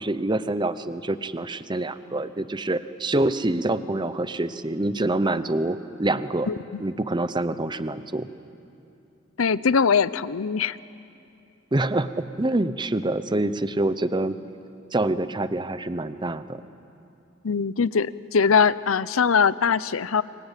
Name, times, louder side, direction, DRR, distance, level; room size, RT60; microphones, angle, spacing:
voice 1, 0.0-6.5 6.8-8.3 11.7-14.4 14.9-16.6, right 2 dB, 20° right, 13 dB, 0.7 m, -26 dB
voice 2, 6.5-6.8 9.4-10.8 17.4-20.2, left 6 dB, 90° left, 17 dB, 0.6 m, -22 dB
28.5 x 24.0 x 8.4 m, 2.7 s
head